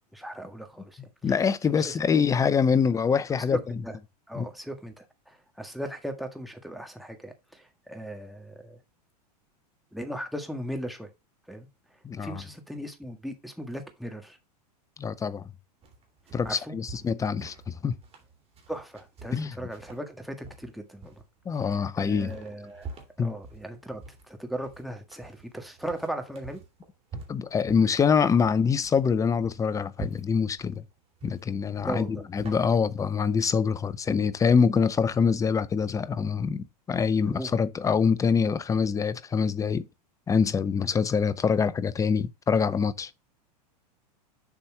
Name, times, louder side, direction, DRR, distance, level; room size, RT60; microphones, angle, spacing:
voice 1, 0.1-1.4 1.7-2.2 3.5-4.0 4.3-8.8 9.9-11.1 11.5-11.7 12.2-14.4 16.4-16.8 18.7-21.2 21.5-26.6 31.8-32.2 37.3-37.5 40.8-40.9, right 1 dB, ahead, 1.7 m, -38 dB
voice 2, 1.2-3.6 4.4-4.5 12.0-12.4 15.0-15.5 16.3-17.9 19.3-19.5 21.5-22.4 23.2-23.3 27.3-30.8 31.2-32.1 32.3-39.9 40.3-43.1, left 6 dB, 15° left, 0.6 m, -25 dB
sound 1, 15.8-32.5, right 4 dB, 30° right, 2.7 m, -47 dB
7.3 x 4.2 x 4.6 m
hypercardioid pair, 100°, 21 cm